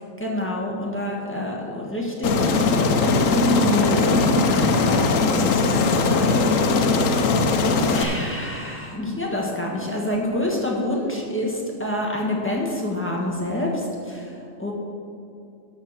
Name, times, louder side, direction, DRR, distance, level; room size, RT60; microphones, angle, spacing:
voice 1, 0.2-5.9 7.9-14.7, left 1 dB, 10° left, -3 dB, 1.5 m, -28 dB
Aircraft, 2.2-8.0, left 3 dB, 75° left, 1.2 m, -20 dB
11.5 x 5.0 x 7.3 m, 2.6 s
omnidirectional pair, 1.4 m